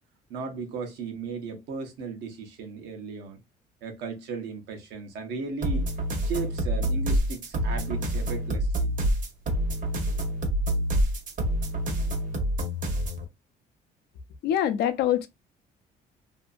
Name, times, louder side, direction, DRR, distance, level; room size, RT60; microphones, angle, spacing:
voice 1, 0.3-3.4 3.8-5.9 6.2-9.0, right 4 dB, 85° right, 0.9 m, -36 dB
sound 1, 5.6-13.2, equal, 50° right, 0.9 m, -27 dB
voice 2, 14.4-15.3, left 10 dB, 75° left, 0.5 m, -24 dB
2.7 x 2.6 x 2.3 m
cardioid pair, 110°, 17 cm